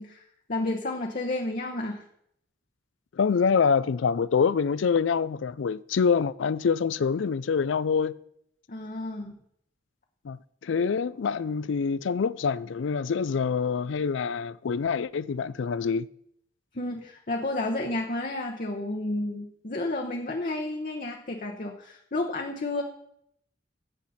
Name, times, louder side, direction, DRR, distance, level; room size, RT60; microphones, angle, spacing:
voice 1, 0.0-2.1 8.7-9.3 16.7-22.8, left 2 dB, 45° left, 1.0 m, -31 dB
voice 2, 3.1-8.1 10.2-16.1, left 6 dB, 75° left, 0.4 m, -26 dB
14.0 x 8.1 x 4.2 m
head